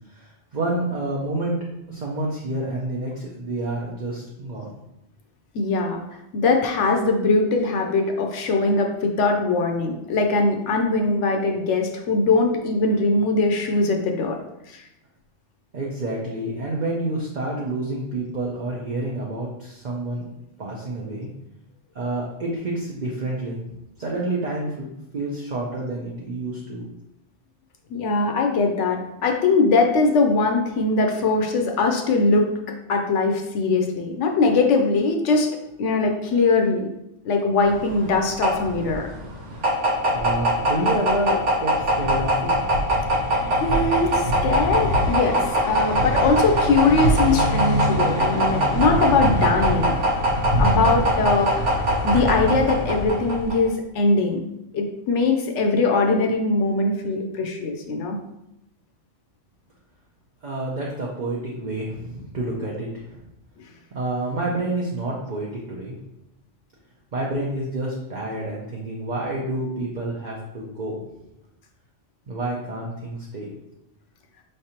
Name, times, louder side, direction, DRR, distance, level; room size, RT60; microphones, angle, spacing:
voice 1, 0.2-1.6 1.9-4.7 15.7-20.3 20.6-21.3 21.9-23.6 24.0-26.8 40.1-42.5 60.4-63.2 63.9-65.9 67.1-71.0 72.3-73.5, right 2 dB, 45° right, -3 dB, 0.7 m, -28 dB
voice 2, 5.5-6.0 6.3-14.4 14.7-14.8 27.9-32.5 32.9-35.5 35.8-36.9 37.2-39.1 43.6-49.9 50.6-54.4 54.7-58.2, left 3 dB, 75° left, 3 dB, 0.9 m, -21 dB
sound 1, 37.7-53.7, equal, 75° right, 1.3 m, -22 dB
5.1 x 3.3 x 2.8 m, 0.86 s
omnidirectional pair, 1.3 m